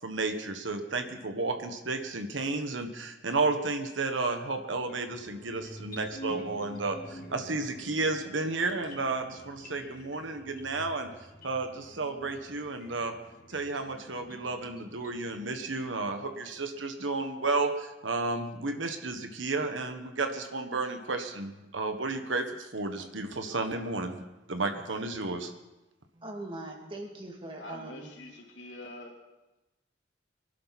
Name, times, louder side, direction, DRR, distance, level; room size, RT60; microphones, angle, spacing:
voice 1, 0.0-11.1 11.4-13.1 13.5-25.5, right 3 dB, 85° right, 1.4 m, -32 dB
sound 1, 4.7-16.8, right 1 dB, 50° left, 2.1 m, -48 dB
voice 2, 26.1-28.1, right 2 dB, 30° right, 2.5 m, -41 dB
voice 3, 27.6-29.2, left 1 dB, 75° left, 3.2 m, -45 dB
23.5 x 11.5 x 4.2 m
head